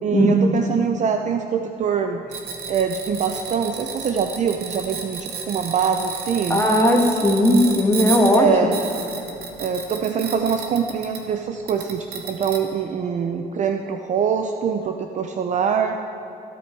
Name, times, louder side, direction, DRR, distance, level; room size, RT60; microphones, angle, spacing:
voice 1, 0.0-2.2 2.7-6.6 8.3-8.8 9.6-16.0, right 7 dB, 45° right, 5 dB, 0.7 m, -24 dB
sound 1, 2.3-11.3 11.7-12.6, right 5 dB, 70° right, 2.1 m, -32 dB
voice 2, 6.5-8.5, left 1 dB, 15° left, 1 dB, 2.1 m, -17 dB
24.5 x 9.3 x 4.7 m, 2.7 s
cardioid pair, 110°, 17 cm